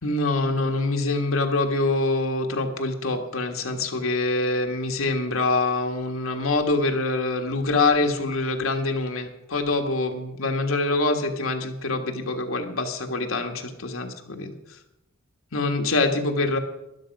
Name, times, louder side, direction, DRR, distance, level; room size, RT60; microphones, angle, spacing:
voice 1, 0.0-14.8 15.5-16.6, left 2 dB, 70° left, 4 dB, 1.7 m, -25 dB
12.5 x 11.5 x 5.4 m, 0.92 s
head